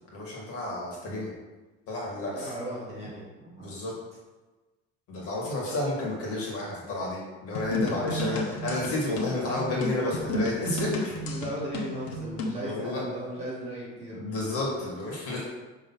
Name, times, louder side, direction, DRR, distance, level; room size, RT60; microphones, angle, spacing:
voice 1, 0.1-1.3 1.9-2.5 3.6-3.9 5.1-11.1 12.6-13.0 14.1-15.5, left 2 dB, 50° left, -3 dB, 2.0 m, -31 dB
voice 2, 2.3-3.9 7.8-8.2 11.2-14.1, right 1 dB, 20° right, -7 dB, 2.2 m, -37 dB
sound 1, 7.5-12.6, left 2 dB, 80° left, 1.1 m, -32 dB
6.0 x 3.6 x 5.6 m, 1.2 s
cardioid pair, 170°, 30 cm